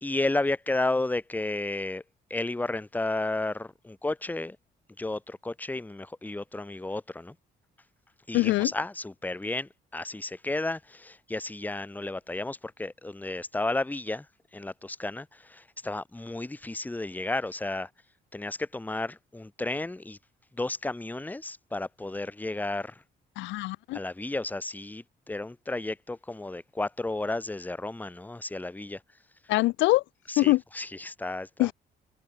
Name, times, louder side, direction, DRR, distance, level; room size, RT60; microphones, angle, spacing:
voice 1, 0.0-2.0 2.3-4.6 5.0-7.3 8.3-14.2 14.5-17.9 18.3-20.2 20.6-22.9 23.9-29.0 30.3-31.7, left 2 dB, 10° left, 0.8 m, -32 dB
voice 2, 8.3-8.7 23.4-24.0 29.5-30.0 30.4-30.6 31.6-31.7, left 19 dB, 90° left, 0.8 m, -23 dB
cardioid pair, 75°, 19 cm